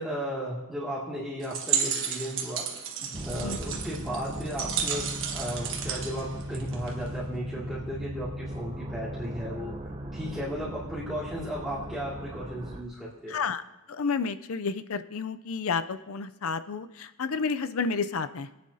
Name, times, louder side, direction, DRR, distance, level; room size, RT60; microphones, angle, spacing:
voice 1, 0.0-2.7 3.0-13.0 13.2-13.4, equal, ahead, -11 dB, 2.3 m, -35 dB
sound 1, 1.4-7.1, right 7 dB, 60° right, 1.5 m, -32 dB
sound 2, 3.1-12.8, equal, 25° right, 0.8 m, -38 dB
voice 2, 3.4-3.8 13.3-13.6 13.9-18.5, left 5 dB, 70° left, 11 dB, 0.5 m, -31 dB
26.0 x 9.6 x 2.8 m, 0.99 s
head